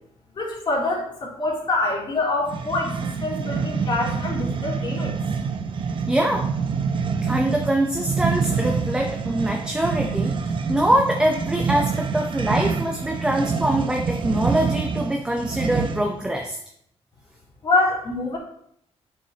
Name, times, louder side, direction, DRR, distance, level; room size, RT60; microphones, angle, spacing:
voice 1, 0.3-5.2 17.6-18.4, left 2 dB, 45° left, -3 dB, 3.3 m, -25 dB
sound 1, 2.5-16.2, right 5 dB, 50° right, 0.8 m, -26 dB
voice 2, 6.1-6.4 7.2-16.6, right 1 dB, 10° right, 1 dB, 0.9 m, -24 dB
8.8 x 7.2 x 3.0 m, 0.70 s
cardioid pair, 110°, 11 cm